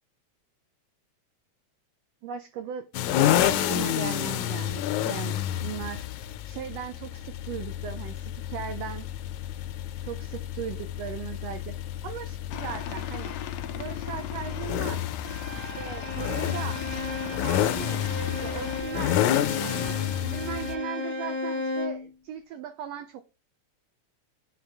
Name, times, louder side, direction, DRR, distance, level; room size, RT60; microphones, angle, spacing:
voice 1, 2.2-2.9 3.2-6.1 6.4-9.1 10.0-11.7 12.0-13.3 13.7-15.0 15.5-16.8 17.2-18.1 18.4-19.2 19.6-23.3, right 8 dB, 75° right, 1.6 m, -38 dB
sound 1, 2.9-20.8, left 12 dB, 90° left, 2.1 m, -30 dB
Aircraft, 12.5-18.8, left 10 dB, 75° left, 1.9 m, -38 dB
Bowed string instrument, 15.2-22.1, left 2 dB, 5° left, 2.4 m, -34 dB
9.3 x 3.8 x 3.4 m
omnidirectional pair, 3.3 m